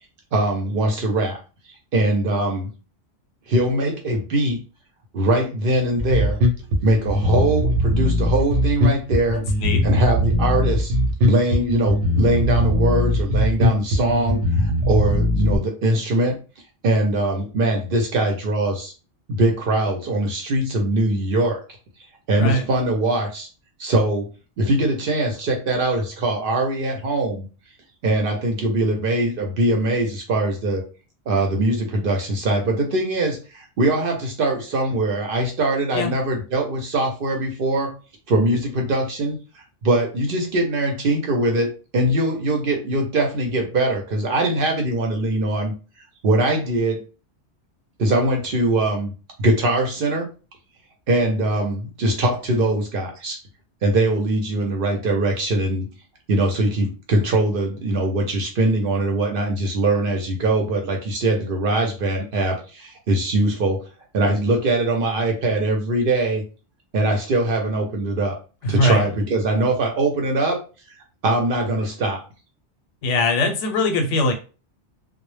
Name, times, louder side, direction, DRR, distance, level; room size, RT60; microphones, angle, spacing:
voice 1, 0.3-1.4 1.9-2.7 3.5-4.6 5.1-6.4 6.8-9.4 9.8-10.9 11.2-16.4 16.8-18.9 19.3-21.6 22.3-23.5 23.8-24.3 24.6-27.5 28.0-30.8 31.3-37.9 38.3-45.7 46.2-47.0 48.0-49.1 49.4-50.3 51.1-53.4 53.8-55.9 56.3-63.8 64.1-66.4 66.9-68.4 68.7-70.6 71.2-72.2, right 1 dB, 60° right, 2 dB, 0.7 m, -22 dB
Bass guitar, 6.0-15.6, left 1 dB, 85° right, 0.9 m, -20 dB
voice 2, 9.3-9.8 22.4-22.7 35.9-36.1 68.6-69.0 73.0-74.3, left 1 dB, 85° left, 3 dB, 0.9 m, -21 dB
2.0 x 2.0 x 3.1 m, 0.34 s
omnidirectional pair, 1.2 m